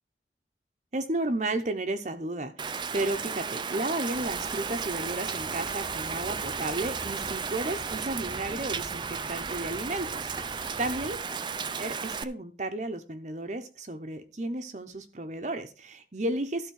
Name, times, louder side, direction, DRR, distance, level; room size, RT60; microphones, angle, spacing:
voice 1, 0.9-11.2 11.8-16.7, right 2 dB, 40° right, 7 dB, 0.8 m, -33 dB
Rain, 2.6-12.2, right 5 dB, 25° right, 0.5 m, -34 dB
sound 1, 4.1-11.2, right 1 dB, 10° right, 1.0 m, -47 dB
13.0 x 4.4 x 6.4 m, 0.34 s
head